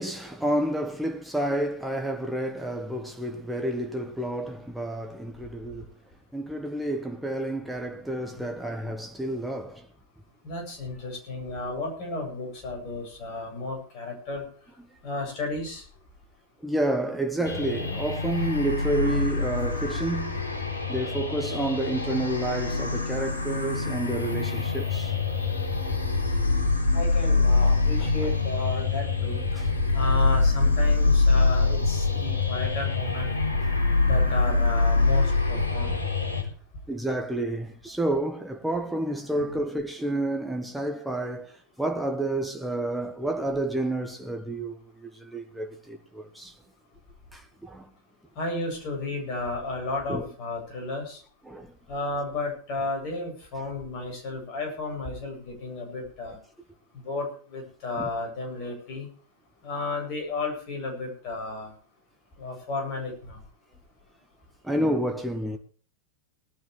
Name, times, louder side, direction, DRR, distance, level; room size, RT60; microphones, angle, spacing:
voice 1, 0.0-5.9 6.3-9.9 16.6-20.4 20.9-25.2 28.0-28.3 29.5-29.7 35.5-35.6 36.9-46.6 47.3-47.9 50.1-50.3 51.4-51.7 58.0-58.1 64.6-65.6, right 1 dB, 5° right, 1.4 m, -30 dB
voice 2, 10.4-14.4 15.0-15.8 26.9-29.4 29.9-33.3 34.0-35.9 48.4-51.2 51.9-56.4 56.9-59.1 59.6-61.7 62.4-63.4, left 2 dB, 40° left, 7.9 m, -33 dB
sound 1, 17.4-36.4, left 3 dB, 75° left, 3.6 m, -25 dB
20.5 x 12.5 x 3.3 m
figure-of-eight pair, 90°, 0 cm